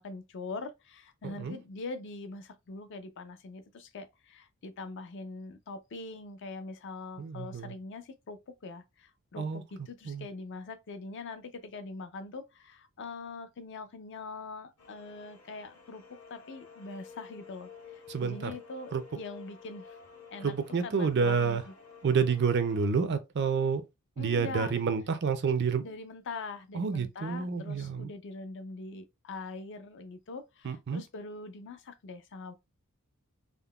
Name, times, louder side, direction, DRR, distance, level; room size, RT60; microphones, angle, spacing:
voice 1, 0.0-20.0 20.3-20.5 20.8-21.6 24.2-24.7 25.8-32.5, left 3 dB, 55° left, 0.4 m, -43 dB
voice 2, 1.2-1.6 7.2-7.8 9.4-10.3 18.1-18.5 18.9-19.0 20.4-21.6 22.0-23.8 24.2-25.8 26.7-28.1 30.6-31.0, right 5 dB, 50° right, 0.4 m, -29 dB
sound 1, 14.8-22.9, left 6 dB, 75° left, 1.2 m, -51 dB
3.6 x 2.0 x 2.3 m
head